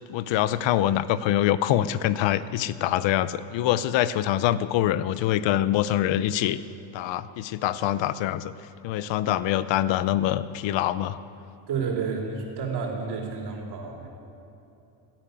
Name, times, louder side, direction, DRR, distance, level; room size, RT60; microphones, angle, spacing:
voice 1, 0.1-6.6 6.9-8.5 8.8-11.2, left 12 dB, 70° left, 15 dB, 0.8 m, -24 dB
voice 2, 11.7-14.1, right 5 dB, 55° right, 0 dB, 3.5 m, -30 dB
15.5 x 8.9 x 9.3 m, 2.9 s
cardioid pair, 110°, 47 cm